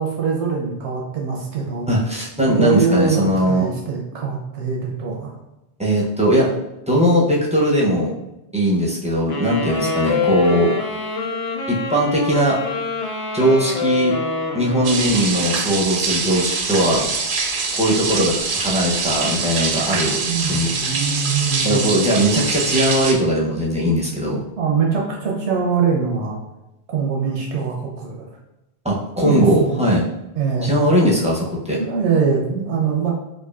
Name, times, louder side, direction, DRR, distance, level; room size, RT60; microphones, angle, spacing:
voice 1, 0.0-1.9 2.5-5.3 20.2-21.8 24.6-26.4 26.9-28.3 29.2-29.8 30.3-30.7 31.8-33.1, right 5 dB, 90° right, -2 dB, 1.1 m, -22 dB
voice 2, 1.9-3.7 5.8-6.5 6.9-8.1 8.5-10.7 11.7-12.6 13.3-14.1 14.5-17.0 17.7-20.7 21.6-24.4 28.8-30.0 30.6-31.8, equal, 10° right, -5 dB, 0.5 m, -19 dB
sound 1, 9.3-15.7, left 3 dB, 70° left, 0.9 m, -25 dB
sound 2, 14.8-23.1, right 4 dB, 60° right, 0.7 m, -24 dB
4.6 x 2.6 x 2.4 m, 0.93 s
omnidirectional pair, 1.1 m